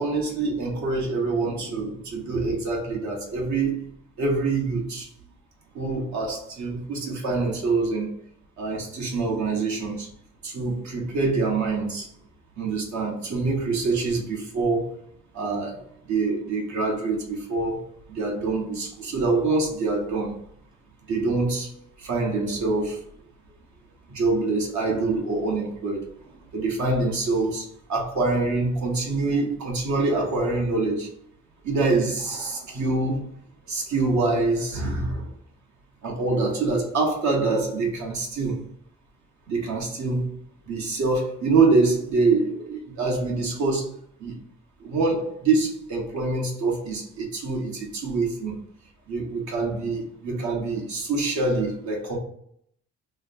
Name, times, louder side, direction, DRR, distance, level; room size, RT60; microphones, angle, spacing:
voice 1, 0.0-3.8 4.2-5.1 5.7-8.1 8.6-10.1 10.4-12.1 12.6-14.9 15.3-15.8 16.1-17.8 18.1-20.4 21.1-21.7 22.0-23.0 24.1-26.1 26.5-31.1 31.6-33.3 33.7-35.3 36.0-38.6 39.5-40.3 40.7-43.9 44.2-44.4 44.8-48.5 49.1-52.2, right 3 dB, 70° right, -1 dB, 1.2 m, -25 dB
2.9 x 2.2 x 4.2 m, 0.68 s
cardioid pair, 90°, 30 cm